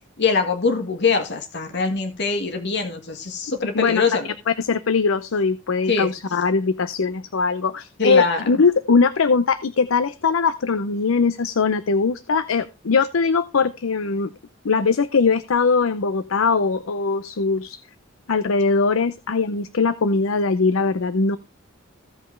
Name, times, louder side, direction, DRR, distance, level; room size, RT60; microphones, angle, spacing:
voice 1, 0.2-4.3 5.9-6.1 8.0-8.6, left 4 dB, 60° left, 5 dB, 1.6 m, -23 dB
voice 2, 4.5-14.3 14.6-17.8 18.3-21.4, left 4 dB, 90° left, 13 dB, 0.6 m, -21 dB
16.0 x 5.4 x 3.2 m, 0.27 s
head